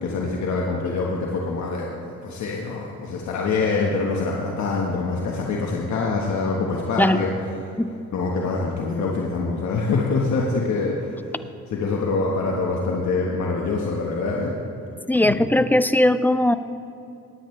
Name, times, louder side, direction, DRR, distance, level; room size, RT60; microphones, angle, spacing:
voice 1, 0.0-7.3 8.1-11.3 11.7-14.5 15.2-15.4, left 3 dB, 65° left, -2 dB, 1.3 m, -25 dB
voice 2, 15.1-16.5, left 1 dB, 5° left, 13 dB, 0.3 m, -19 dB
19.0 x 8.7 x 3.2 m, 2.8 s
cardioid pair, 90°, 30 cm